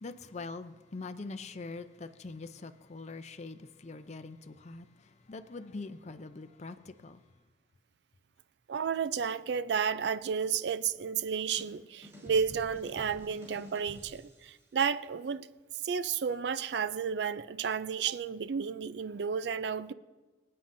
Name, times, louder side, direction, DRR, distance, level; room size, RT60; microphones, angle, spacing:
voice 1, 0.0-4.9 5.3-7.2, left 3 dB, 40° left, 0.5 m, -43 dB
voice 2, 8.7-15.5 15.8-19.9, right 6 dB, 70° right, 0.4 m, -32 dB
sound 1, 11.2-14.7, left 1 dB, 15° right, 3.4 m, -51 dB
24.0 x 8.6 x 2.6 m
head